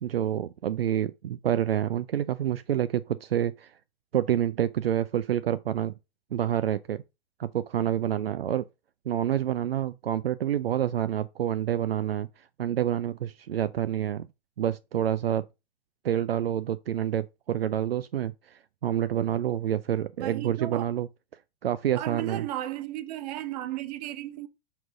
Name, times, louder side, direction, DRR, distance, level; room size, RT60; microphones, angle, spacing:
voice 1, 0.0-3.7 4.1-5.9 6.3-7.0 7.4-8.7 9.1-14.3 14.6-15.4 16.0-21.1 21.6-22.5, right 10 dB, 70° right, 0.5 m, -28 dB
voice 2, 20.2-20.9 21.9-24.5, right 13 dB, 40° right, 0.8 m, -34 dB
5.9 x 4.1 x 4.8 m
figure-of-eight pair, 105°, 31 cm